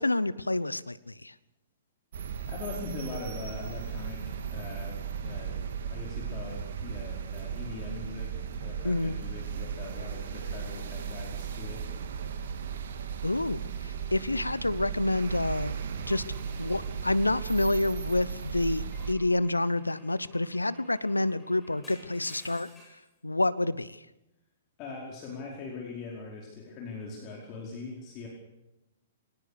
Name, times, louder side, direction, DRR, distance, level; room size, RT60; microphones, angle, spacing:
voice 1, 0.0-1.3 8.8-9.2 13.2-15.8 16.1-16.2 16.6-22.7 23.2-24.0, left 2 dB, 85° left, 18 dB, 0.8 m, -28 dB
sound 1, 2.1-19.1, right 7 dB, 55° right, 2.2 m, -36 dB
voice 2, 2.5-5.6 5.9-11.9 24.8-28.3, left 3 dB, 30° left, -2 dB, 4.9 m, -41 dB
Car / Engine / Glass, 16.0-18.2 18.9-23.1, left 1 dB, 10° left, 7.7 m, -56 dB
23.0 x 19.0 x 6.9 m, 0.92 s
figure-of-eight pair, 115°, 0 cm